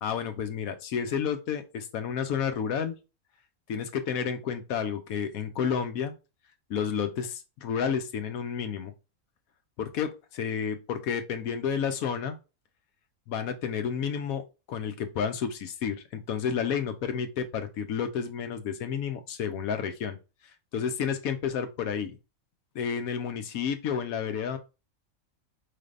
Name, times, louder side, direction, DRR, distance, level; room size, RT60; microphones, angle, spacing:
voice 1, 0.0-2.9 3.7-6.1 6.7-8.9 9.8-12.4 13.3-14.4 14.7-20.2 20.7-22.2 22.7-24.6, left 7 dB, 90° left, 8 dB, 1.2 m, -31 dB
4.9 x 3.4 x 2.4 m, 0.29 s
omnidirectional pair, 1.4 m